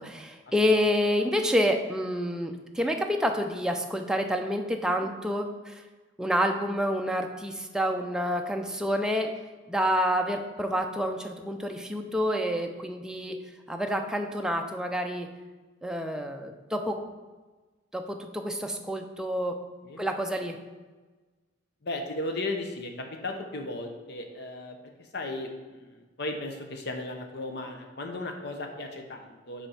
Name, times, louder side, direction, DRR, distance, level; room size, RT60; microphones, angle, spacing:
voice 1, 0.0-5.8 6.2-9.3 9.7-13.4 13.7-15.3 15.8-17.0 17.9-19.6 20.0-20.6, equal, 5° right, 3 dB, 0.5 m, -28 dB
voice 2, 21.8-24.8 25.1-29.7, left 2 dB, 60° left, 4 dB, 0.9 m, -35 dB
5.7 x 4.3 x 5.6 m, 1.3 s
head